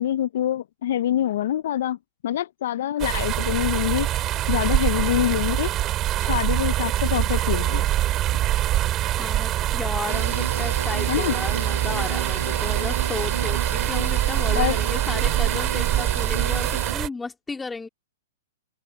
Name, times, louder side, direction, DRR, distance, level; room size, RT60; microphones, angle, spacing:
voice 1, 0.0-2.0 2.2-4.1 4.5-5.7 6.2-7.8 11.1-11.3 14.5-14.8, left 12 dB, 65° left, 0.7 m, -25 dB
sound 1, 3.0-17.1, right 13 dB, 30° right, 3.0 m, -24 dB
voice 2, 9.2-17.9, left 4 dB, 10° left, 2.8 m, -34 dB
sound 2, 10.1-16.9, right 6 dB, 90° right, 1.4 m, -31 dB
hypercardioid pair, 130°, 0 cm